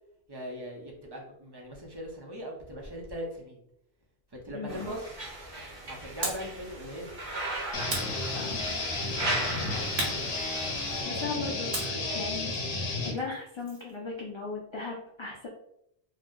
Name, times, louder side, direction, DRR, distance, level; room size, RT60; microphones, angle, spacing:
voice 1, 0.3-3.6 4.4-5.2 5.9-7.1 9.6-10.3 10.9-12.2, equal, 30° right, -1 dB, 0.5 m, -40 dB
voice 2, 4.5-4.9 8.3-8.9 11.1-12.5 13.0-15.5, left 4 dB, 50° left, -2 dB, 0.3 m, -37 dB
sound 1, 4.7-11.0, right 1 dB, 45° right, 1.2 m, -37 dB
sound 2, 6.2-6.6 7.9-8.8 10.0-11.1 11.7-13.9, right 2 dB, 85° right, 1.2 m, -37 dB
sound 3, 7.7-13.1, left 2 dB, 80° left, 0.9 m, -32 dB
2.6 x 2.0 x 3.5 m, 0.74 s
omnidirectional pair, 1.0 m